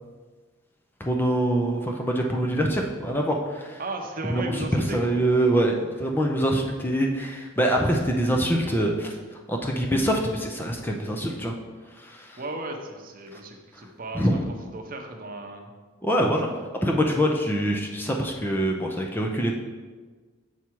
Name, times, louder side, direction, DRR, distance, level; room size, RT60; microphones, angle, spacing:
voice 1, 1.0-3.8 4.3-9.2 9.5-11.5 14.1-14.4 16.0-16.5 16.8-19.5, right 1 dB, 10° left, 1 dB, 0.5 m, -24 dB
voice 2, 3.8-5.1 7.9-8.0 12.4-14.4 14.7-15.7 16.2-16.6, right 2 dB, 45° right, 3 dB, 0.8 m, -35 dB
7.1 x 4.7 x 4.5 m, 1.4 s
head